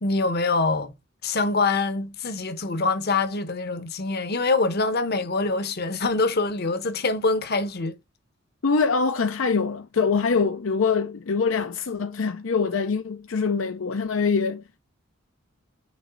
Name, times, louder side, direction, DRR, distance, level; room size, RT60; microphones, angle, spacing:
voice 1, 0.0-0.9 1.2-8.0, left 3 dB, 55° left, 1.0 m, -24 dB
voice 2, 8.6-14.8, left 5 dB, 75° left, 0.6 m, -24 dB
6.3 x 3.1 x 5.1 m
head